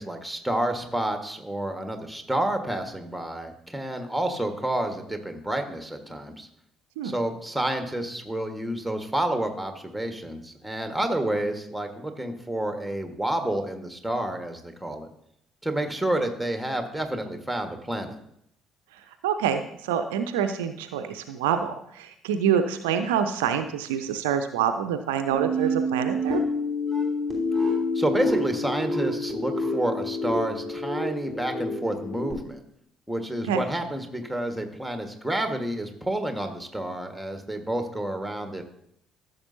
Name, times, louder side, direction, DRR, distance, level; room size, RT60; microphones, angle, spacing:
voice 1, 0.0-6.5 7.0-15.1 15.6-18.2 27.9-32.6 33.1-38.6, right 1 dB, ahead, 5 dB, 1.5 m, -29 dB
voice 2, 19.2-26.4 33.5-33.6, right 8 dB, 70° right, 9 dB, 0.5 m, -26 dB
sound 1, 25.3-32.3, left 1 dB, 20° left, 3.0 m, -28 dB
14.0 x 6.7 x 2.7 m, 0.73 s
figure-of-eight pair, 50°, 0 cm